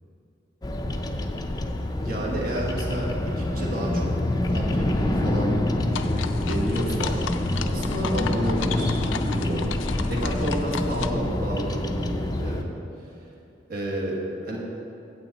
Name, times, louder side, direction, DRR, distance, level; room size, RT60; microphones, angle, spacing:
Bird vocalization bird call bird song, 0.6-12.6, left 1 dB, 20° left, 0.4 m, -26 dB
voice 1, 2.0-4.1 4.5-5.7 6.4-7.2 7.6-9.6 10.1-12.7 13.7-14.2 14.4-14.6, right 1 dB, 50° right, -3 dB, 1.6 m, -31 dB
sound 1, 5.9-11.1, left 7 dB, 90° left, 0.4 m, -35 dB
9.0 x 8.4 x 4.1 m, 2.8 s
head